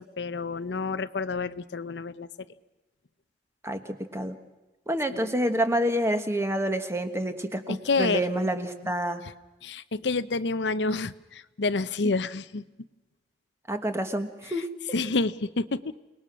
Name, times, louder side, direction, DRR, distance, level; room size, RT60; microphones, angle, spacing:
voice 1, 0.0-2.3 5.1-5.3 7.7-8.2 9.6-12.6 14.9-15.8, left 3 dB, 85° left, 14 dB, 0.7 m, -28 dB
voice 2, 4.9-9.2 12.0-12.1 13.7-14.7, right 1 dB, 15° right, 8 dB, 1.4 m, -28 dB
29.0 x 19.5 x 6.2 m, 1.1 s
head